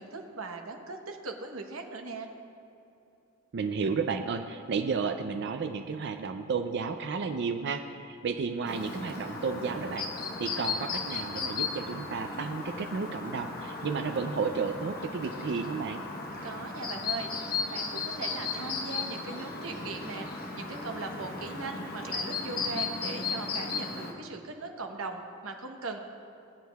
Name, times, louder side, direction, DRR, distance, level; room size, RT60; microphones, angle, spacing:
voice 1, 0.0-2.3 16.4-26.0, right 3 dB, 80° right, 4 dB, 1.0 m, -39 dB
voice 2, 3.5-10.1 10.4-16.0, right 5 dB, 55° right, 7 dB, 0.4 m, -32 dB
Chirp tweet, 8.6-24.1, left 4 dB, 45° left, 1.0 m, -36 dB
20.0 x 8.3 x 2.3 m, 2.7 s
head